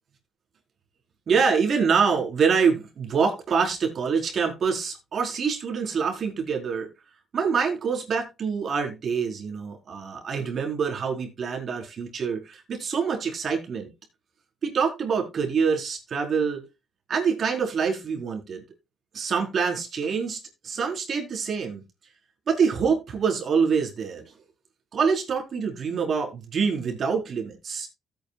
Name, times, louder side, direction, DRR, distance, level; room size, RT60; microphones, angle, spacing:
voice 1, 1.3-6.9 7.3-13.9 14.6-16.6 17.1-18.6 19.1-21.8 22.5-24.3 24.9-27.9, right 6 dB, 55° right, 4.4 m, -25 dB
15.5 x 9.1 x 2.4 m
cardioid pair, 90°, 0 cm